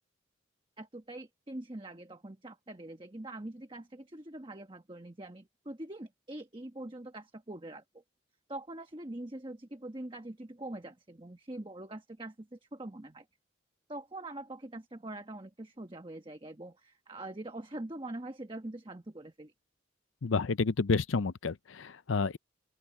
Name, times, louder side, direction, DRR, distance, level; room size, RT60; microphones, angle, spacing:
voice 1, 0.8-8.0 8.5-13.3 13.9-19.5, right 1 dB, 25° right, 1.2 m, -43 dB
voice 2, 20.2-22.4, left 4 dB, 85° left, 0.6 m, -30 dB
open air
head